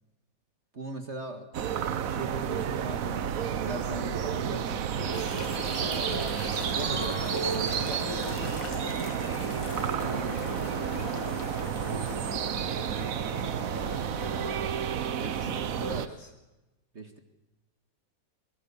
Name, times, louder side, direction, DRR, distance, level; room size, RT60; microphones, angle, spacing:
voice 1, 0.7-1.6 2.0-5.3 6.7-8.1 9.9-10.8 15.2-16.2 16.9-17.2, right 2 dB, 40° right, 7 dB, 2.0 m, -39 dB
sound 1, 1.5-16.1, right 9 dB, 55° right, 1.2 m, -31 dB
sound 2, 5.0-14.6, left 1 dB, 15° left, 1.3 m, -38 dB
sound 3, 5.1-12.2, left 7 dB, 80° left, 2.1 m, -44 dB
voice 2, 5.8-6.6 12.0-13.1 13.5-14.8 15.0-16.3, equal, 60° left, 4 dB, 4.8 m, -52 dB
22.5 x 21.0 x 7.0 m, 1.0 s
omnidirectional pair, 2.0 m